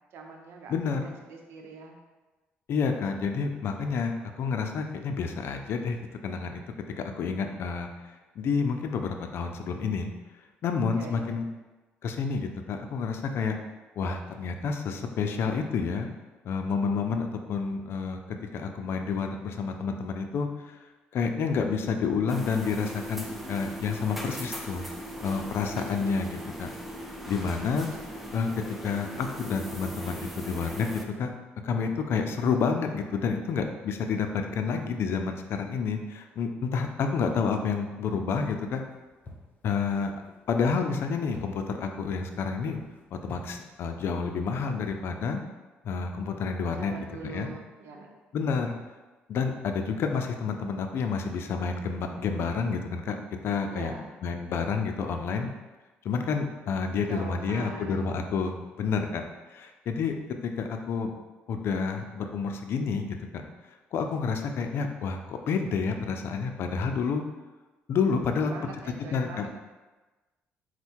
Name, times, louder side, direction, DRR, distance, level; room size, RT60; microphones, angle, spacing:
voice 1, 0.1-0.7 1.0-2.0 11.0-11.4 46.8-48.1 53.7-54.1 57.1-58.0 68.3-69.5, right 3 dB, 70° right, 2 dB, 0.7 m, -43 dB
voice 2, 0.7-1.1 2.7-6.0 6.2-6.6 7.2-7.9 8.4-10.1 10.6-11.5 12.0-13.6 14.0-16.1 16.4-18.2 18.5-20.8 21.1-24.9 25.2-26.7 27.3-27.9 28.3-28.5 28.8-31.3 31.6-38.8 39.6-40.1 40.5-42.8 43.2-45.4 45.8-46.9 47.2-47.5 48.3-48.7 49.3-53.2 53.4-53.9 54.2-55.5 56.0-59.2 59.5-60.2 60.4-61.1 61.5-63.4 63.9-67.2 67.9-68.7 69.1-69.5, left 5 dB, 65° left, 5 dB, 0.5 m, -29 dB
sound 1, 22.3-31.1, equal, 5° right, 0.5 m, -39 dB
sound 2, 38.8-45.5, left 2 dB, 35° left, 0.9 m, -50 dB
4.5 x 2.2 x 4.4 m, 1.2 s
cardioid pair, 85°, 4 cm